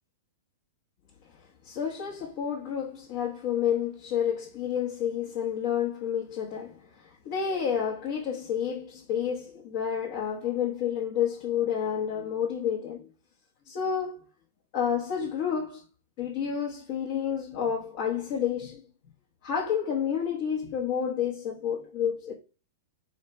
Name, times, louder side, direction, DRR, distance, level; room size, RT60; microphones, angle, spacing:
voice 1, 1.6-13.1 13.7-14.2 14.7-15.8 16.2-18.8 19.4-22.3, left 8 dB, 50° left, 1.1 m, -30 dB
4.1 x 3.2 x 3.2 m
hypercardioid pair, 110°, 0 cm